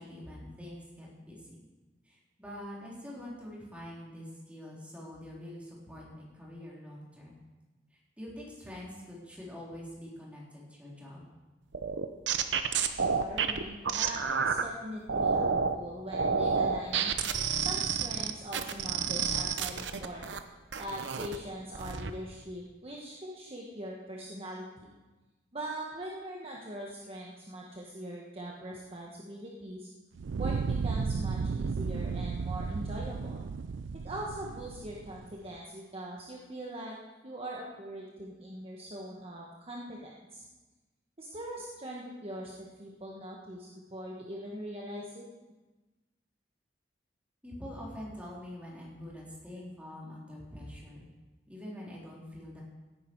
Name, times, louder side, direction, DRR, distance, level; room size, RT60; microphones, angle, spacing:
voice 1, 0.0-1.6 2.0-7.3 7.9-11.2 47.4-51.0 51.5-52.6, left 1 dB, 5° right, -5 dB, 3.7 m, -45 dB
sound 1, 11.7-14.6 15.1-15.8 16.1-20.4 20.7-21.4 21.8-22.1, right 6 dB, 70° right, 0.8 m, -29 dB
voice 2, 12.4-17.1 17.6-20.2 20.8-24.9 25.5-29.9 30.4-33.5 33.9-37.0 37.2-40.4 41.2-45.3, right 1 dB, 35° right, -3 dB, 1.4 m, -42 dB
Fire, 30.2-35.3, right 4 dB, 90° right, 0.4 m, -34 dB
17.0 x 9.8 x 4.7 m, 1.2 s
head